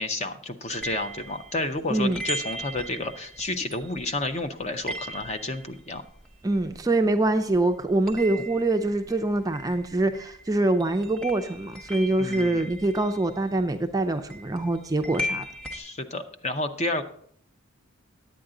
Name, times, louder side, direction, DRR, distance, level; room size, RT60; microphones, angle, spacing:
voice 1, 0.0-6.0 12.2-12.7 15.7-17.0, left 2 dB, 30° left, 8 dB, 0.6 m, -31 dB
sound 1, 0.7-7.3 7.5-15.8, equal, 5° left, 1.0 m, -38 dB
voice 2, 1.9-2.2 6.4-15.4, right 2 dB, 15° right, 7 dB, 0.4 m, -24 dB
10.0 x 8.7 x 3.8 m, 0.62 s
head